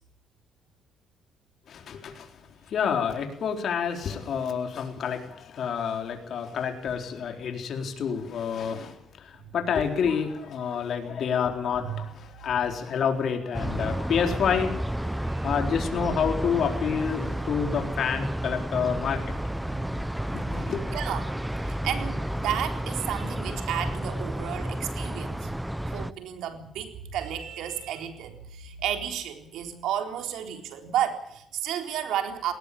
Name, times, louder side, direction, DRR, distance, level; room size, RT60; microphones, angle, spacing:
voice 1, 1.7-2.3 2.7-14.7 15.0-15.1 15.4-19.4 20.3-21.0, left 7 dB, 65° left, 5 dB, 4.1 m, -28 dB
sound 1, 13.5-26.1, right 1 dB, 5° right, 0.8 m, -31 dB
voice 2, 20.9-21.3 21.6-25.5 25.9-32.5, right 10 dB, 85° right, 6 dB, 4.0 m, -32 dB
19.5 x 19.0 x 8.6 m, 0.73 s
cardioid pair, 90°, 0 cm